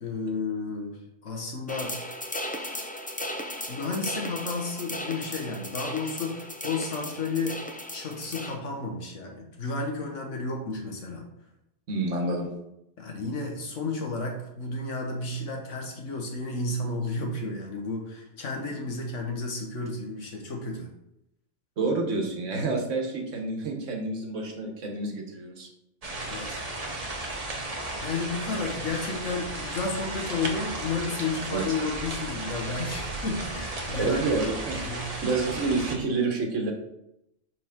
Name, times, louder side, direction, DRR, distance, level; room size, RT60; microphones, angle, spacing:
voice 1, 0.0-2.0 3.7-7.6 7.9-11.3 13.0-20.9 26.3-27.4 28.0-34.2 34.9-35.1, left 3 dB, 80° left, 2 dB, 1.6 m, -32 dB
sound 1, 1.7-8.5, left 1 dB, 15° left, 0.3 m, -36 dB
voice 2, 11.9-12.5 21.8-25.7 31.5-31.6 34.0-34.9 35.2-36.7, right 3 dB, 80° right, 2 dB, 1.5 m, -28 dB
sound 2, 26.0-36.0, right 2 dB, 35° right, 1.0 m, -34 dB
6.2 x 5.4 x 3.6 m, 0.82 s
omnidirectional pair, 1.2 m